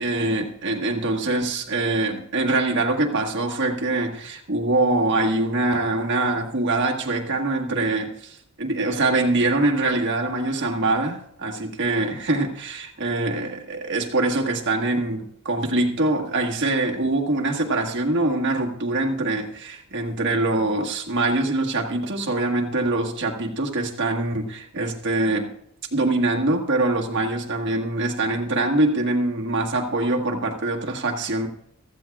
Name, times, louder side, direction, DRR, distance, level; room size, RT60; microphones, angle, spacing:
voice 1, 0.0-25.5 25.9-31.5, right 2 dB, 55° right, 1 dB, 1.6 m, -24 dB
15.5 x 14.0 x 2.4 m, 0.75 s
head